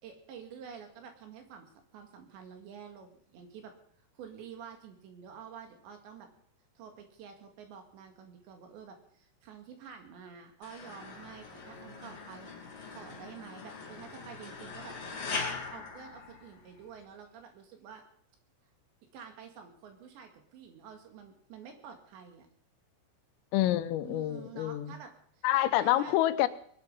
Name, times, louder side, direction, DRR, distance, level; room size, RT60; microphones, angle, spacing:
voice 1, 0.0-3.7 4.2-6.3 6.8-12.5 12.9-15.0 15.7-18.0 19.1-22.5 24.0-26.2, right 7 dB, 65° right, 5 dB, 4.1 m, -49 dB
sound 1, 10.6-16.9, left 4 dB, 35° left, 3.5 m, -41 dB
voice 2, 23.5-24.9 25.4-26.5, left 14 dB, 85° left, 12 dB, 3.5 m, -27 dB
20.5 x 12.0 x 5.5 m, 0.63 s
omnidirectional pair, 5.8 m